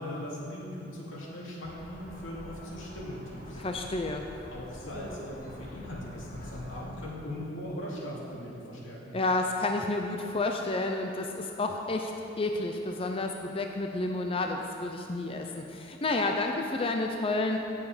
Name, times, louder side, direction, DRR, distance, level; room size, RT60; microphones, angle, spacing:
voice 1, 0.0-3.6 4.5-9.2, left 1 dB, 85° left, -4 dB, 2.7 m, -39 dB
sound 1, 1.6-6.9, equal, 45° left, 1.6 m, -47 dB
voice 2, 3.6-4.2 9.1-12.1 12.4-17.6, left 2 dB, 30° left, 3 dB, 0.5 m, -30 dB
17.5 x 7.3 x 5.0 m, 2.8 s
head